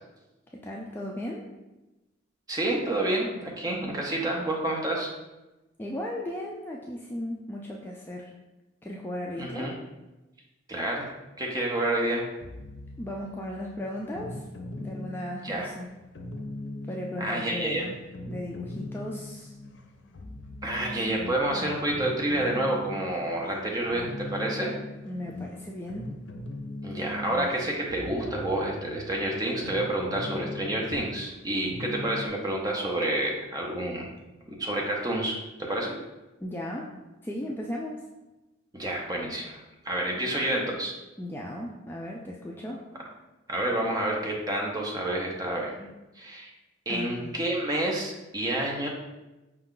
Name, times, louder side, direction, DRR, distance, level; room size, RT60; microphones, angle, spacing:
voice 1, 0.6-1.4 5.8-8.3 8.8-9.7 13.0-14.4 14.8-15.9 16.9-18.0 18.3-19.5 25.1-26.1 36.4-36.9 37.2-38.0 41.2-42.8 45.8-45.9 46.9-47.5, left 1 dB, 10° left, -2 dB, 0.3 m, -36 dB
voice 2, 2.5-5.1 9.4-9.7 10.7-11.1 11.4-12.3 15.4-15.7 17.2-17.9 20.6-24.7 26.8-34.1 34.5-36.0 38.7-40.9 43.5-45.7 46.2-46.5 46.9-48.9, right 1 dB, 20° right, -1 dB, 0.7 m, -29 dB
sound 1, 12.4-32.3, left 1 dB, 75° left, 0.5 m, -40 dB
5.3 x 2.3 x 3.7 m, 1.0 s
head